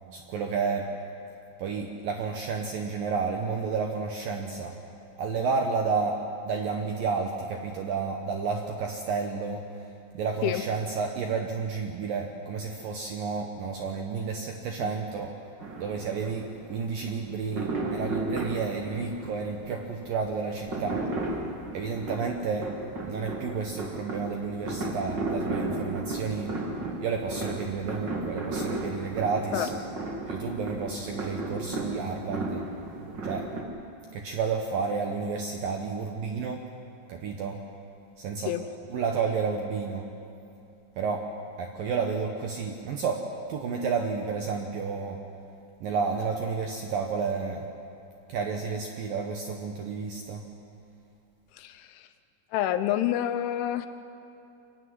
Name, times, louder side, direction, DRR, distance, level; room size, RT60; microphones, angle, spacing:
voice 1, 0.1-0.9 1.6-4.7 5.2-6.2 6.4-9.6 10.1-15.3 15.8-21.0 21.7-22.6 23.0-26.5 27.0-29.8 30.3-32.6 33.2-33.4 34.1-36.6 37.1-37.6 38.2-38.5 38.9-40.0 41.0-41.2 41.6-43.2 43.5-45.2 45.8-47.7 48.3-50.4, right 5 dB, 70° right, 2 dB, 2.2 m, -31 dB
sound 1, 15.6-33.6, right 2 dB, 45° right, 1.4 m, -34 dB
voice 2, 51.5-52.1 52.5-53.9, left 12 dB, 80° left, 9 dB, 3.2 m, -28 dB
24.0 x 15.5 x 9.6 m, 2.7 s
omnidirectional pair, 5.5 m